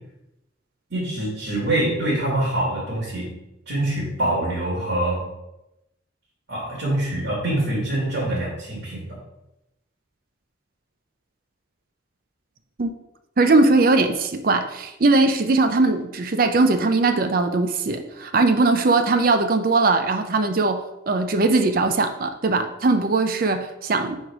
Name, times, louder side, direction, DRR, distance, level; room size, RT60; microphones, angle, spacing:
voice 1, 0.9-3.3 3.7-5.3 6.5-9.2, right 1 dB, 85° right, -8 dB, 2.3 m, -25 dB
voice 2, 13.4-24.2, right 3 dB, 50° right, 7 dB, 0.5 m, -20 dB
4.7 x 4.5 x 5.0 m, 0.90 s
head